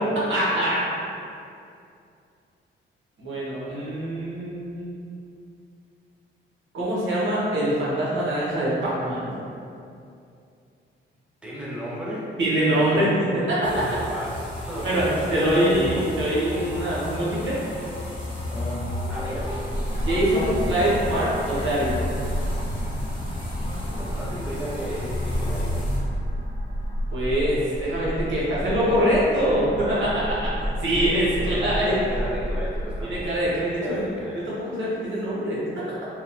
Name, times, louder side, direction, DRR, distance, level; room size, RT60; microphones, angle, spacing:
voice 1, 0.1-0.8 3.2-4.9 6.7-9.3 12.4-13.8 14.8-15.0 15.3-17.6 20.0-22.1 27.1-30.4 30.8-31.9 33.1-34.0 34.5-35.6 35.9-36.0, right 1 dB, 65° right, -7 dB, 0.9 m, -24 dB
voice 2, 11.4-12.3 13.6-15.9 19.1-19.6 23.8-25.9 30.9-34.5, right 1 dB, 5° right, -7 dB, 0.6 m, -35 dB
sound 1, 13.6-26.0, left 1 dB, 25° left, 0.8 m, -32 dB
sound 2, 19.0-33.3, equal, 40° right, 1.0 m, -31 dB
2.8 x 2.2 x 2.5 m, 2.5 s
cardioid pair, 75°, 21 cm